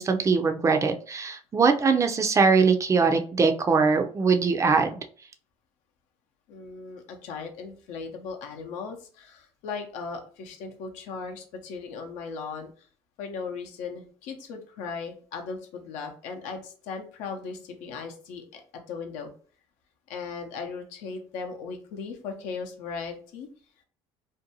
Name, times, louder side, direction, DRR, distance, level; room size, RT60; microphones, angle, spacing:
voice 1, 0.0-5.0, right 4 dB, 25° right, 6 dB, 0.4 m, -22 dB
voice 2, 6.5-12.7 13.2-18.6 18.9-19.3 20.1-23.5, left 5 dB, 75° left, 4 dB, 0.6 m, -37 dB
2.6 x 2.2 x 2.7 m, 0.42 s
supercardioid pair, 90°, 13 cm